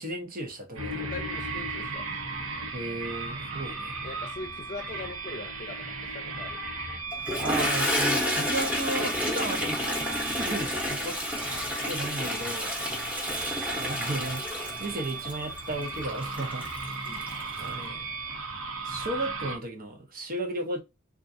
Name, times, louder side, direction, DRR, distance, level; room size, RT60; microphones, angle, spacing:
voice 1, 0.0-1.0 2.7-4.0 7.4-9.8 10.4-11.2 11.8-12.7 13.7-16.7 17.0-18.1 18.8-20.8, right 1 dB, 45° right, 0.8 m, -34 dB
sound 1, 0.7-19.6, right 3 dB, 80° right, 0.9 m, -36 dB
voice 2, 0.9-2.0 4.0-6.6 12.8-13.0 17.0-17.3, left 3 dB, 35° left, 0.6 m, -41 dB
Toilet flush, 7.1-17.7, left 1 dB, 5° right, 0.9 m, -30 dB
3.6 x 2.4 x 2.6 m
head